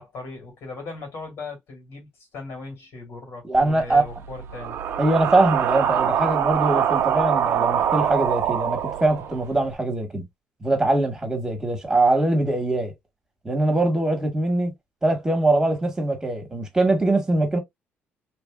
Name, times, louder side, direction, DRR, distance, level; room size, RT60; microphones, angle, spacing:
voice 1, 0.0-4.8, left 3 dB, 70° left, 2.2 m, -38 dB
voice 2, 3.4-4.0 5.0-10.3 10.6-12.9 13.4-14.7 15.0-17.6, right 2 dB, 10° right, 1.4 m, -22 dB
sound 1, 3.5-9.7, right 9 dB, 65° right, 0.5 m, -24 dB
3.1 x 2.6 x 2.2 m
cardioid pair, 110°, 4 cm